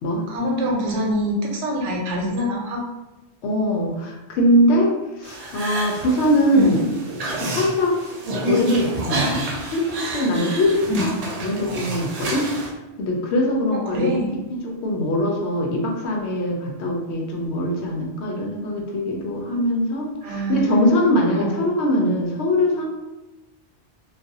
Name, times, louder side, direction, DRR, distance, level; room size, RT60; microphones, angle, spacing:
voice 1, 0.3-2.8 6.5-6.7 10.9-11.0 13.7-14.3 20.2-20.8 21.4-21.5, equal, 90° right, -1 dB, 1.0 m, -25 dB
voice 2, 3.4-6.8 7.4-7.9 8.4-12.5 13.0-14.1 14.5-22.8, left 1 dB, 75° left, 0 dB, 0.8 m, -22 dB
sound 1, 5.2-12.7, right 1 dB, 60° right, 0.4 m, -29 dB
2.4 x 2.2 x 2.6 m, 1.1 s
omnidirectional pair, 1.1 m